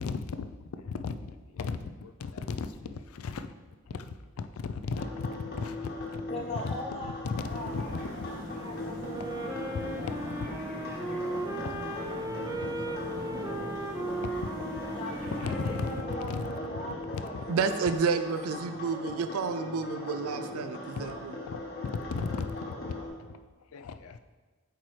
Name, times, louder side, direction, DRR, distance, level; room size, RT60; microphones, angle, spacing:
voice 1, 0.0-3.5 3.9-5.3 5.5-6.2 6.6-6.7 7.2-7.5 7.7-8.3 9.7-9.9 10.4-10.5 11.7-13.0 15.4-15.9 16.3-16.4 17.3-17.4 21.5-23.0 23.7-24.2, left 4 dB, 80° left, 10 dB, 0.4 m, -36 dB
sound 1, 4.9-23.1, left 2 dB, 45° left, 1.3 m, -40 dB
voice 2, 6.3-7.8 8.6-9.7 10.0-10.1 14.9-17.4, left 2 dB, 25° left, -3 dB, 1.1 m, -41 dB
sound 2, 7.4-16.0, equal, 5° left, 1.1 m, -42 dB
Wind instrument woodwind instrument, 8.9-17.3, right 2 dB, 15° right, 0.5 m, -37 dB
voice 3, 17.5-21.4, right 5 dB, 85° right, 10 dB, 0.4 m, -30 dB
8.1 x 4.6 x 3.1 m, 1.3 s
head